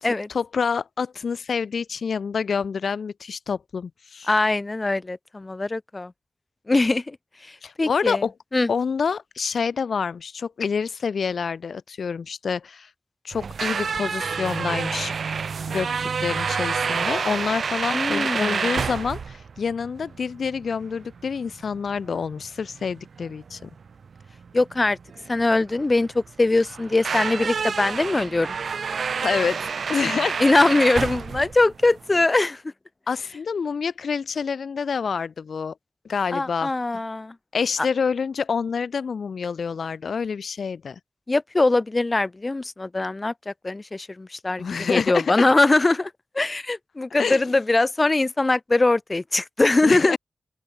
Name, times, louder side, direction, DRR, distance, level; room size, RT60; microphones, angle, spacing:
voice 1, 0.0-4.3 7.6-8.3 8.7-12.9 13.2-15.1 15.7-23.7 29.2-30.4 33.1-35.7 36.1-36.7 37.5-41.0 44.6-45.5 47.2-47.4 49.8-50.2, left 6 dB, 80° left, 0.6 m, -27 dB
voice 2, 4.3-6.1 6.7-7.2 7.5-8.2 8.5-8.7 17.9-18.7 24.5-25.0 25.3-28.6 30.4-32.6 36.3-37.3 41.3-50.2, left 2 dB, 30° left, 0.7 m, -22 dB
sound 1, 13.3-32.2, right 5 dB, 75° right, 1.1 m, -29 dB
open air
wide cardioid pair, 70°, 0 cm